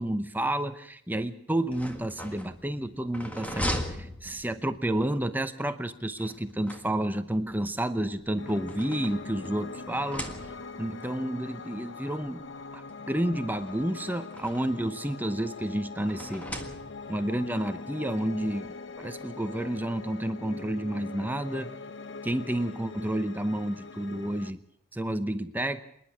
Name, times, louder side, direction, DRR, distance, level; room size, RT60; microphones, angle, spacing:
voice 1, 0.0-10.3 10.8-12.4 12.7-16.5 17.1-18.7 19.0-21.7 22.2-24.6 24.9-25.8, right 1 dB, 10° right, 10 dB, 0.8 m, -30 dB
sound 1, 1.6-4.9 6.2-7.4 8.2-9.6 9.9-10.9 11.8-11.9 12.2-12.3 13.5-14.9 16.1-17.3, equal, 5° left, 1.7 m, -38 dB
Piano, 8.4-24.5, left 4 dB, 60° left, 0.8 m, -42 dB
26.5 x 10.5 x 9.8 m, 0.71 s
head